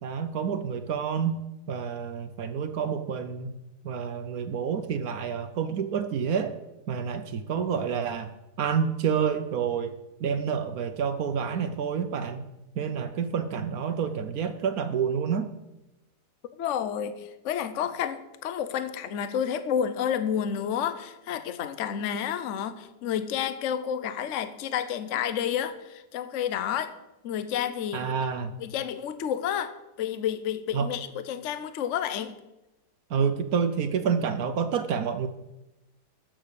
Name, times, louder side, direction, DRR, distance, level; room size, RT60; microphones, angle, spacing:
voice 1, 0.0-1.4 1.7-3.5 3.8-6.6 6.9-8.3 8.6-12.5 12.8-15.5 27.9-28.6 30.7-30.9 33.1-35.3, right 7 dB, 65° right, 9 dB, 1.2 m, -28 dB
voice 2, 16.6-26.9 27.2-28.1 28.6-32.3, left 9 dB, 55° left, 11 dB, 1.0 m, -30 dB
13.5 x 6.4 x 6.8 m, 0.96 s
omnidirectional pair, 1.8 m